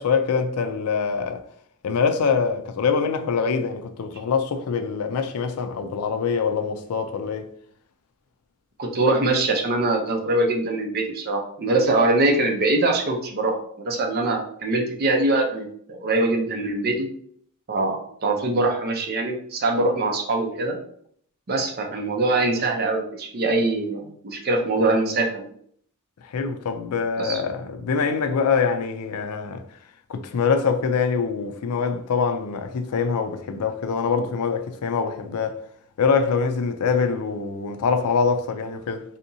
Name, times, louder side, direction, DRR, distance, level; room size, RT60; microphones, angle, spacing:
voice 1, 0.0-1.4 1.8-7.5 26.3-29.6 30.1-35.6 36.0-39.0, left 5 dB, 80° left, 0.4 m, -24 dB
voice 2, 8.8-17.1 17.7-20.8 21.5-25.5 27.2-27.4, right 2 dB, 45° right, 0.6 m, -23 dB
3.4 x 2.8 x 2.7 m
head